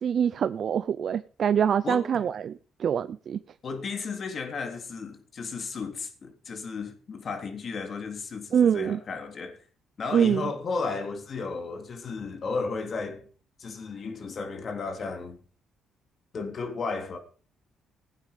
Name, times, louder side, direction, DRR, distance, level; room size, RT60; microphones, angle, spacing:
voice 1, 0.0-3.4 8.5-9.0 10.1-10.5, right 8 dB, 55° right, 0.6 m, -25 dB
voice 2, 3.6-9.6 10.0-13.2 13.6-15.4 16.3-17.2, left 4 dB, 50° left, 3.3 m, -34 dB
17.0 x 9.1 x 5.2 m
cardioid pair, 85°, 0 cm